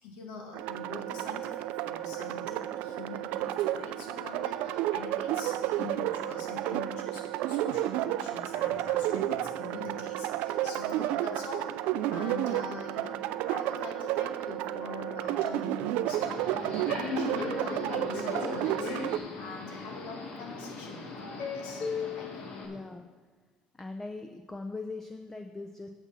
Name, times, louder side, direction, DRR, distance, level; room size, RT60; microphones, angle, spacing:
voice 1, 0.0-11.8 12.1-21.8 22.1-22.6, left 3 dB, 85° left, 2 dB, 1.8 m, -44 dB
sound 1, 0.5-19.2, right 13 dB, 80° right, 0.4 m, -31 dB
Subway metro underground, 16.1-22.7, left 4 dB, 60° left, 1.6 m, -37 dB
voice 2, 22.7-23.0 23.8-25.9, left 3 dB, 15° left, 6 dB, 0.6 m, -40 dB
8.2 x 7.1 x 5.6 m, 1.3 s
cardioid pair, 110°, 2 cm